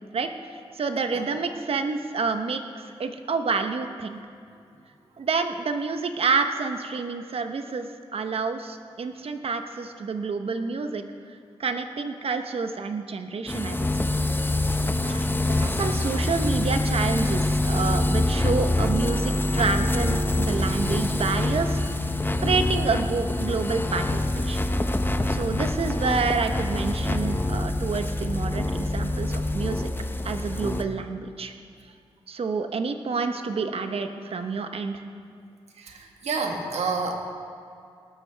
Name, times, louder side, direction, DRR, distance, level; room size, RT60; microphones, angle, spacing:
voice 1, 0.7-4.2 5.2-11.0 11.6-13.9 15.0-21.8 22.4-24.6 25.3-29.9 30.2-31.5 32.3-35.0, right 4 dB, 65° right, 7 dB, 1.0 m, -28 dB
sound 1, 13.5-30.8, left 2 dB, 20° left, 0.8 m, -25 dB
voice 2, 35.7-37.1, right 4 dB, 80° right, 2 dB, 1.6 m, -29 dB
19.5 x 12.5 x 3.4 m, 2.4 s
cardioid pair, 55°, 11 cm